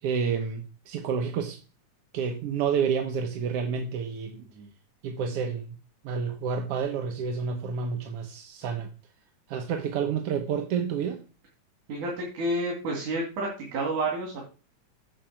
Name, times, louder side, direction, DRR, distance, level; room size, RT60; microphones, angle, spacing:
voice 1, 0.0-1.6 2.1-4.4 5.0-5.8 6.0-8.9 9.5-11.2, right 6 dB, 65° right, 5 dB, 1.6 m, -29 dB
voice 2, 11.9-14.4, right 2 dB, 90° right, -1 dB, 3.6 m, -30 dB
9.2 x 4.8 x 6.4 m, 0.34 s
omnidirectional pair, 3.4 m